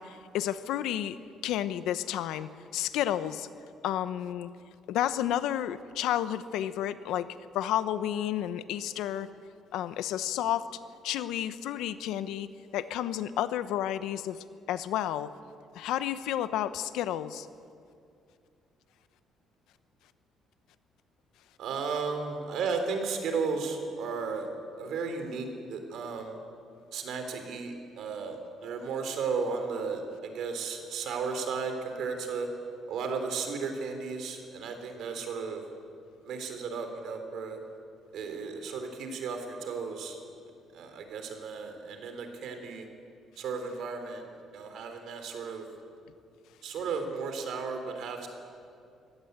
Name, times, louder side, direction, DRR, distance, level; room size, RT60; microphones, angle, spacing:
voice 1, 0.0-3.5 3.8-4.5 4.9-7.3 7.5-9.3 9.7-10.7 11.0-12.5 12.7-14.4 14.7-15.3 15.7-17.5, left 11 dB, 85° left, 13 dB, 0.9 m, -31 dB
voice 2, 21.6-24.5 24.8-26.4 26.9-32.5 32.9-35.6 36.2-37.6 38.1-40.2 40.7-42.9 43.4-44.2 44.5-45.7 46.6-48.3, right 5 dB, 60° right, 6 dB, 3.4 m, -34 dB
24.5 x 17.5 x 8.1 m, 2.5 s
cardioid pair, 175°, 0 cm